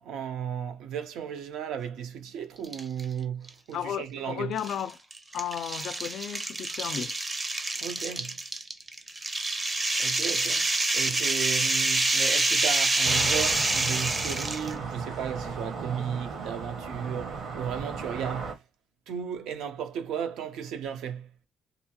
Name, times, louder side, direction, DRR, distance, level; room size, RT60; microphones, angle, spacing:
voice 1, 0.0-4.6 7.8-8.4 10.0-18.6 19.1-21.3, right 8 dB, 85° right, 0.6 m, -35 dB
sound 1, 2.6-3.0 3.5-3.6 4.6-14.7, right 2 dB, 25° right, 0.5 m, -27 dB
voice 2, 3.7-5.0 5.3-7.1, left 9 dB, 70° left, 0.3 m, -34 dB
sound 2, 13.0-18.5, right 4 dB, 65° right, 1.0 m, -36 dB
2.7 x 2.2 x 2.8 m
cardioid pair, 90°, 0 cm